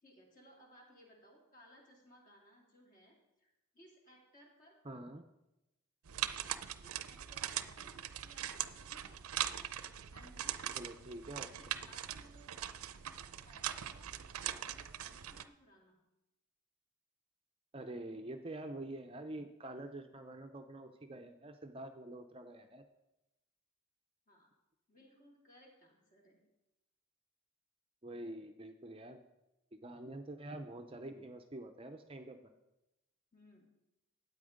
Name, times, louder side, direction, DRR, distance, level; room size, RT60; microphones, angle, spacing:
voice 1, 0.0-4.8 6.8-9.6 10.1-10.8 11.6-12.8 13.4-14.1 14.4-16.0 24.3-24.5 24.9-26.4 33.3-33.6, equal, 35° left, -1 dB, 2.5 m, -62 dB
voice 2, 4.8-5.3 10.8-11.5 17.7-22.8 28.0-29.2 29.7-32.4, right 1 dB, 25° right, 6 dB, 0.5 m, -46 dB
sound 1, 6.0-15.4, right 11 dB, 80° right, 0.5 m, -41 dB
12.0 x 8.7 x 5.1 m, 0.95 s
head